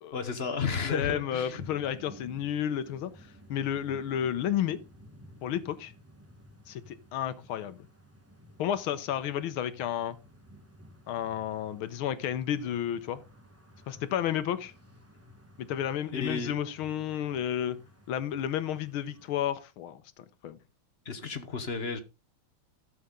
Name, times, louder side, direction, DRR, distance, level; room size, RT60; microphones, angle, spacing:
voice 1, 0.1-1.6 16.1-16.6 21.0-22.0, left 5 dB, 40° left, 0.9 m, -32 dB
voice 2, 0.8-3.1 3.5-4.8 5.4-5.9 6.7-7.8 8.6-10.2 11.1-13.2 13.9-14.7 15.6-17.8 18.1-20.6, left 10 dB, 75° left, 1.6 m, -32 dB
sound 1, 1.4-19.5, equal, 10° right, 0.8 m, -54 dB
12.5 x 7.1 x 3.7 m
omnidirectional pair, 2.4 m